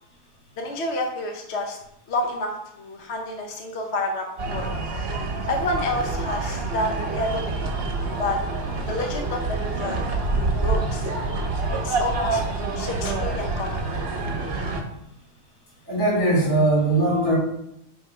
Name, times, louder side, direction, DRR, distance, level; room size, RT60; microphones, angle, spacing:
voice 1, 0.6-1.8 2.1-4.7 5.5-7.8 8.2-8.4 8.9-10.0 10.3-11.1 11.7-12.4 12.8-13.8, left 1 dB, 50° left, 2 dB, 1.0 m, -29 dB
sound 1, 4.4-14.8, right 3 dB, 45° right, 1.1 m, -27 dB
voice 2, 15.9-17.4, right 2 dB, 70° left, -4 dB, 3.6 m, -20 dB
9.1 x 3.5 x 4.8 m, 0.78 s
omnidirectional pair, 1.6 m